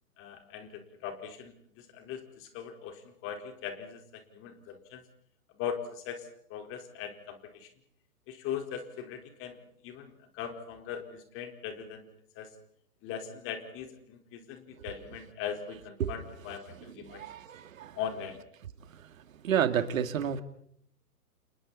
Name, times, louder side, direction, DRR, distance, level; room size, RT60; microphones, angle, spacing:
voice 1, 0.2-4.0 4.3-5.0 5.5-7.7 8.3-9.6 9.8-12.0 12.4-12.5 13.0-17.2 17.9-18.4, left 8 dB, 25° left, 4.4 m, -40 dB
voice 2, 16.8-18.0 18.9-19.2 19.4-20.4, right 9 dB, 60° right, 2.5 m, -31 dB
30.0 x 29.5 x 4.2 m
hypercardioid pair, 135°, 46 cm